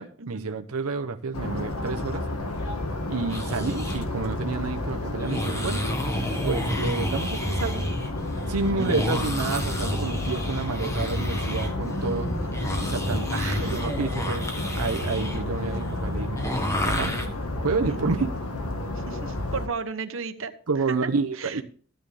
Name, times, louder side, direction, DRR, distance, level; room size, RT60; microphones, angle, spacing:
voice 1, 0.0-2.2 3.1-5.9 6.4-7.8 8.5-12.3 12.8-13.3 13.7-14.5 14.8-16.4 16.9-17.1 17.6-18.4 20.7-21.6, right 4 dB, 85° right, 5 dB, 0.8 m, -29 dB
sound 1, 1.3-19.7, left 2 dB, 80° left, 1.6 m, -31 dB
sound 2, 3.2-4.0 5.2-17.3, equal, 15° left, 1.3 m, -31 dB
voice 2, 8.7-9.4 13.3-13.9 14.2-14.4 17.9-18.2 19.1-20.5 20.9-21.6, right 4 dB, 65° right, 9 dB, 1.0 m, -35 dB
14.0 x 9.7 x 3.4 m, 0.43 s
head